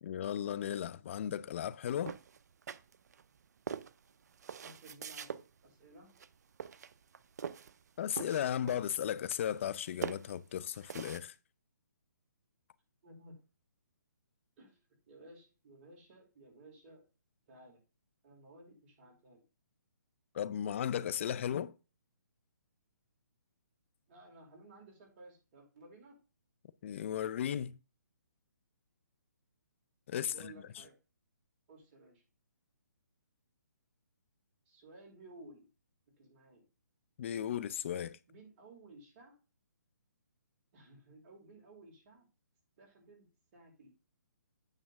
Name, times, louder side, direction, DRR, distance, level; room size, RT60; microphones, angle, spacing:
voice 1, 0.0-2.2 8.0-11.3 20.3-21.7 26.8-27.8 30.1-30.5 37.2-38.2, left 9 dB, 40° left, 0.6 m, -35 dB
sound 1, 2.0-3.2 3.7-5.4 6.1-6.3 6.6-7.8 8.1-9.0 9.3-9.8 10.0-11.2, right 7 dB, 60° right, 0.7 m, -43 dB
voice 2, 4.6-5.4 5.6-6.2 13.0-13.4 14.6-14.8 15.1-17.0 17.5-17.8 18.2-19.4 24.1-26.2 30.3-30.9 31.7-32.2 34.6-35.7 36.2-36.7 38.3-39.4 40.7-42.3 42.8-43.9, right 2 dB, 35° right, 4.8 m, -56 dB
9.1 x 7.1 x 3.5 m
hypercardioid pair, 155°, 10 cm